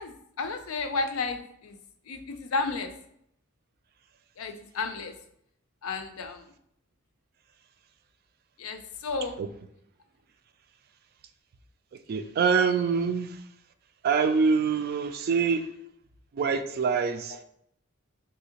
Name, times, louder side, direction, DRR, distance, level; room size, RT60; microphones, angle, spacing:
voice 1, 0.0-1.8 2.1-2.9 4.4-5.1 5.8-6.4 8.6-9.4, left 4 dB, 90° left, 8 dB, 0.4 m, -32 dB
voice 2, 11.9-13.4 14.0-15.7 16.3-17.4, right 5 dB, 50° right, 9 dB, 0.3 m, -25 dB
3.6 x 2.8 x 2.8 m, 0.71 s
head